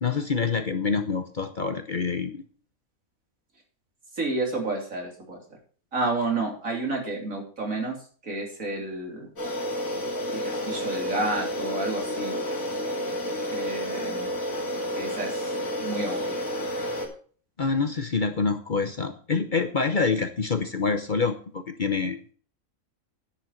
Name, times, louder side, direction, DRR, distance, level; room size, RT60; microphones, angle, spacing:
voice 1, 0.0-2.4 17.6-22.3, left 4 dB, 40° left, 8 dB, 0.9 m, -26 dB
voice 2, 4.1-5.4 5.9-8.0 8.2-9.3 10.3-12.3 13.5-14.3 15.0-15.5 15.8-16.4, right 2 dB, 75° right, 1 dB, 3.6 m, -30 dB
sound 1, 9.4-17.1, equal, 80° left, 3.1 m, -30 dB
10.5 x 7.7 x 5.9 m, 0.43 s
omnidirectional pair, 1.4 m